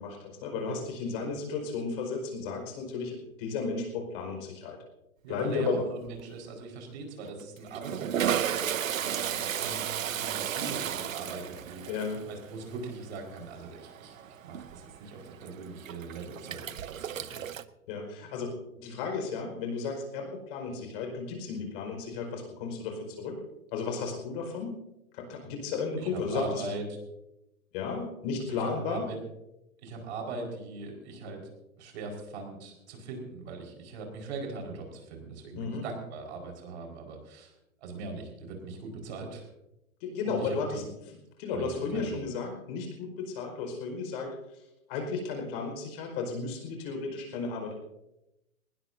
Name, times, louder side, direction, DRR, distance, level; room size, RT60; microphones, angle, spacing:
voice 1, 0.0-4.8 5.3-5.8 11.9-12.2 17.9-23.4 23.7-24.7 25.1-26.7 27.7-29.0 35.5-35.8 40.0-40.8 41.4-44.3 44.9-47.7, left 4 dB, 40° left, 3 dB, 5.1 m, -34 dB
voice 2, 5.2-11.8 12.3-17.4 26.0-26.8 28.5-29.2 29.8-31.5 31.8-37.5 37.8-39.5 40.2-40.8 41.5-42.2, right 3 dB, 50° right, 2 dB, 5.0 m, -41 dB
Toilet flush, 5.4-5.8 6.1-6.2 7.2-17.6, right 9 dB, 70° right, 0.8 m, -34 dB
20.0 x 20.0 x 2.7 m, 0.90 s
figure-of-eight pair, 115°, 42 cm